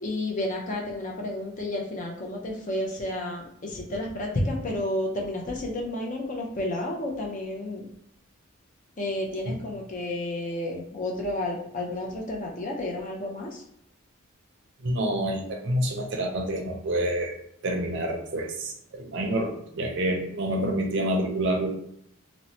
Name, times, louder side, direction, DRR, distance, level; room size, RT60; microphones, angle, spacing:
voice 1, 0.0-7.9 9.0-13.6, left 1 dB, 35° left, -1 dB, 0.5 m, -31 dB
voice 2, 14.8-17.4 17.6-21.7, right 1 dB, 55° right, 2 dB, 0.5 m, -28 dB
2.9 x 2.0 x 2.7 m, 0.70 s
head